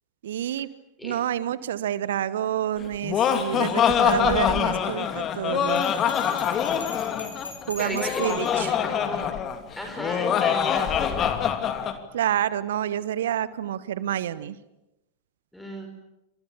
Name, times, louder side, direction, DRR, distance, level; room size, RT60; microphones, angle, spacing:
voice 1, 0.2-0.7 1.0-5.9 7.7-8.7 12.1-14.5, right 11 dB, 60° right, 16 dB, 1.2 m, -28 dB
Laughter, 2.8-12.0, left 8 dB, 30° left, 2.9 m, -24 dB
Bell, 5.6-8.6, left 2 dB, 80° left, 6.8 m, -42 dB
voice 2, 7.8-9.3 9.8-11.3 15.5-15.9, equal, 5° left, 3 dB, 5.3 m, -35 dB
29.5 x 26.5 x 7.2 m, 0.94 s
figure-of-eight pair, 90°, 0 cm